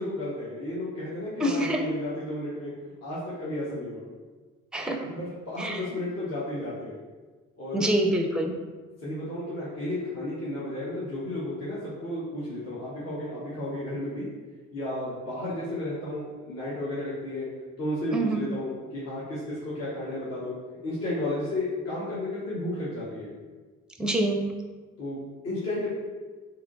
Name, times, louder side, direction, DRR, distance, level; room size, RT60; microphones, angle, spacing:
voice 1, 0.0-2.7 3.0-4.0 5.0-6.9 7.6-7.9 9.0-14.3 14.7-17.5 17.8-20.5 20.8-23.3 25.0-25.9, left 1 dB, 55° left, -9 dB, 1.2 m, -33 dB
voice 2, 1.4-1.8 4.7-5.1 5.6-5.8 7.7-8.5 18.1-18.4 24.0-24.5, right 1 dB, 5° right, 3 dB, 0.5 m, -26 dB
3.4 x 2.8 x 3.8 m, 1.3 s
cardioid pair, 90°, 30 cm